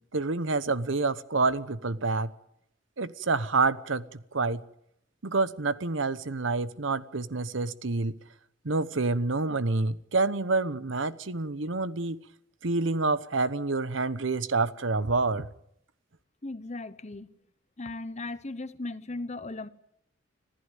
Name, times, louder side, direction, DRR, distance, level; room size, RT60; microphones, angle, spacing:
voice 1, 0.1-2.3 3.0-4.0 4.3-4.6 5.2-8.2 8.6-12.2 12.6-15.5, right 3 dB, 75° right, 1.0 m, -28 dB
voice 2, 16.4-17.3 17.8-19.7, left 2 dB, 35° left, 1.0 m, -37 dB
25.5 x 15.5 x 9.1 m
head